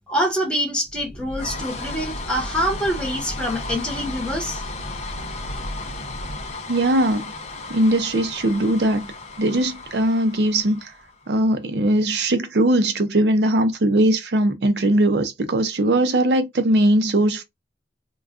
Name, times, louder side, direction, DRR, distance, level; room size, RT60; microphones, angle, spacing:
voice 1, 0.1-4.6, equal, 5° left, 1.0 m, -25 dB
sound 1, 0.9-11.4, left 2 dB, 40° left, 0.5 m, -34 dB
voice 2, 6.7-7.3 7.7-9.1 9.4-10.9 11.3-17.4, right 1 dB, 70° right, 0.6 m, -20 dB
2.4 x 2.2 x 3.5 m
head